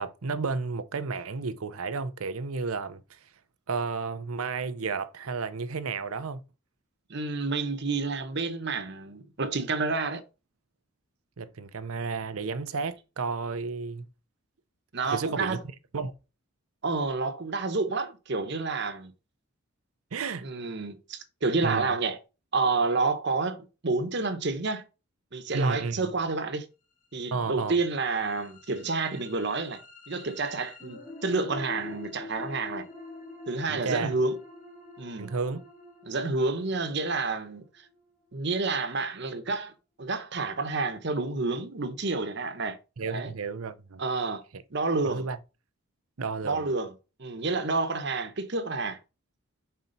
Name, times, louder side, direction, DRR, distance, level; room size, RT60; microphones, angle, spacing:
voice 1, 0.0-3.2 3.7-6.4 11.4-14.0 15.0-15.6 15.9-16.1 20.1-20.5 21.6-21.9 25.5-26.1 27.3-27.8 33.7-34.2 35.2-35.6 43.0-44.0 45.0-45.4 46.2-46.7, right 4 dB, 80° right, 0.6 m, -32 dB
voice 2, 7.1-10.2 14.9-15.6 16.8-19.1 20.4-22.2 22.5-24.8 25.3-26.7 27.1-29.8 30.1-32.9 33.5-34.4 35.0-35.3 36.1-37.6 38.3-39.7 40.0-42.8 43.1-43.3 44.0-44.4 44.7-45.3 46.4-46.9 47.2-49.0, right 3 dB, 50° right, 1.0 m, -29 dB
sound 1, 27.0-39.0, left 3 dB, 35° left, 1.8 m, -46 dB
5.7 x 4.2 x 3.9 m
head